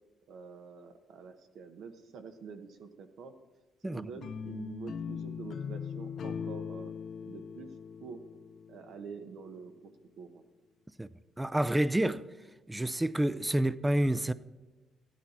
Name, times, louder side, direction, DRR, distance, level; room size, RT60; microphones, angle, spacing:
voice 1, 0.3-3.3 3.8-6.9 7.2-7.7 8.0-8.2 8.7-10.4, right 5 dB, 75° right, 1.0 m, -46 dB
sound 1, 4.2-9.3, left 7 dB, 55° left, 0.5 m, -40 dB
voice 2, 11.4-12.2 12.7-14.3, right 1 dB, 10° right, 0.4 m, -28 dB
13.5 x 10.5 x 4.3 m
cardioid pair, 90°, 0 cm